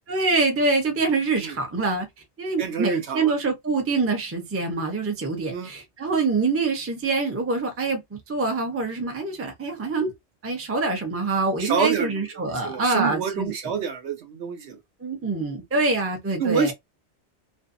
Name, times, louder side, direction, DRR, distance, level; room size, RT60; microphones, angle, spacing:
voice 1, 0.1-2.1 2.4-10.1 10.4-13.5 15.0-16.7, right 3 dB, 15° right, 0.5 m, -25 dB
voice 2, 2.6-3.3 5.5-5.7 11.6-14.8 16.4-16.7, right 6 dB, 75° right, 0.9 m, -27 dB
2.6 x 2.2 x 2.5 m
omnidirectional pair, 1.2 m